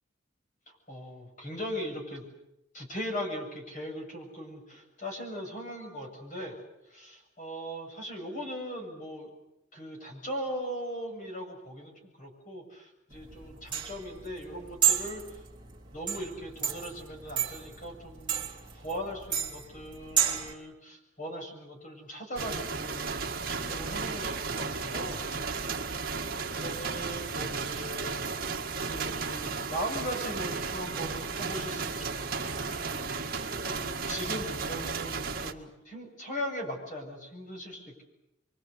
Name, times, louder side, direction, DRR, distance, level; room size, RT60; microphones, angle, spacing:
voice 1, 0.7-2.3 2.7-6.6 6.9-9.3 9.7-15.4 15.9-18.5 18.7-25.2 26.4-28.2 28.8-38.0, equal, 40° left, 2 dB, 7.4 m, -39 dB
sound 1, 13.1-20.5, right 9 dB, 25° right, 3.4 m, -31 dB
sound 2, 22.4-35.5, right 4 dB, 50° right, 1.9 m, -34 dB
27.0 x 24.0 x 8.2 m, 0.85 s
head